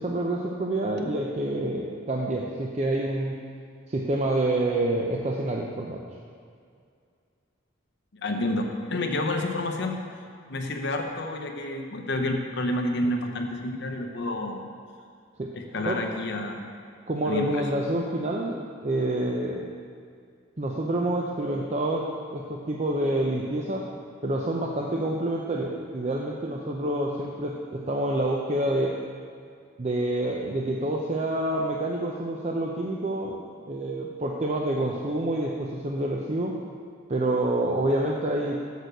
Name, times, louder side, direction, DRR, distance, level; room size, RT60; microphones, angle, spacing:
voice 1, 0.0-3.3 3.9-6.0 15.4-15.5 15.9-16.0 17.1-19.7 20.6-22.1 22.3-23.9 24.2-29.0 29.8-33.4 33.6-36.6 37.1-38.6, right 1 dB, 35° right, -1 dB, 0.5 m, -27 dB
voice 2, 8.2-10.0 10.5-14.7 15.5-16.6 17.3-17.7, left 1 dB, 60° left, 4 dB, 0.8 m, -29 dB
6.7 x 6.3 x 6.6 m, 2.3 s
head